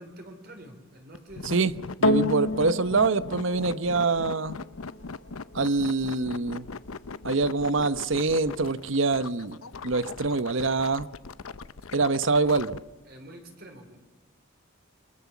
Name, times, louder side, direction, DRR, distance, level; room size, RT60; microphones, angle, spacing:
voice 1, 0.0-1.7 12.4-12.6 13.0-14.0, right 1 dB, 45° right, 3.9 m, -46 dB
sound 1, 1.1-12.8, left 4 dB, 85° left, 0.8 m, -39 dB
sound 2, 2.0-10.6 11.3-11.4, left 1 dB, 65° left, 1.7 m, -33 dB
voice 2, 2.0-4.6 5.5-6.7 7.2-9.6 9.8-11.1 11.9-12.8, right 3 dB, 65° right, 0.9 m, -25 dB
28.5 x 23.5 x 7.2 m
head